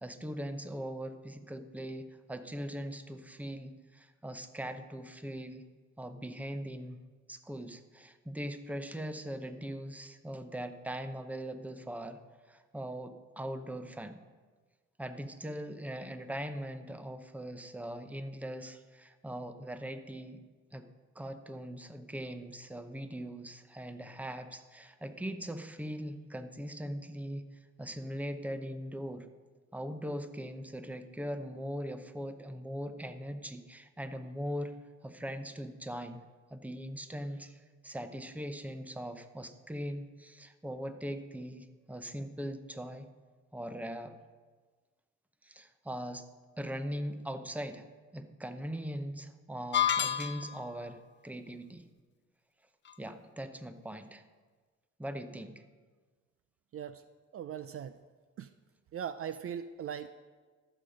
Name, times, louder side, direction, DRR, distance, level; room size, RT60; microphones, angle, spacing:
voice 1, 0.0-5.6 6.0-7.0 7.3-12.2 12.5-14.2 15.0-20.4 20.7-20.9 21.1-27.5 27.8-29.3 29.7-34.7 35.0-36.2 36.5-43.1 43.5-44.2 45.4-46.3 46.6-47.8 48.1-51.9 53.0-54.2 55.0-55.5, equal, 5° right, 9 dB, 0.8 m, -40 dB
sound 1, 49.7-50.7, left 9 dB, 40° left, 0.5 m, -29 dB
voice 2, 56.7-57.0 57.3-58.0 58.4-58.5 58.9-60.1, right 8 dB, 50° right, 11 dB, 0.5 m, -39 dB
14.0 x 7.0 x 5.1 m, 1.4 s
cardioid pair, 90°, 30 cm